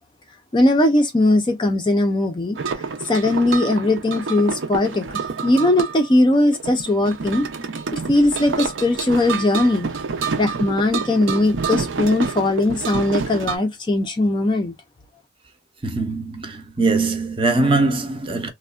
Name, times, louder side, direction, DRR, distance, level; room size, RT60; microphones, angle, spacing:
voice 1, 0.5-2.6 3.1-5.1 5.4-7.5 7.9-9.9 10.4-14.7, left 1 dB, 25° left, 0.4 m, -19 dB
sound 1, 2.6-13.6, right 5 dB, 75° right, 0.5 m, -28 dB
voice 2, 15.8-18.5, right 3 dB, 25° right, 0.5 m, -21 dB
3.3 x 2.1 x 2.2 m
head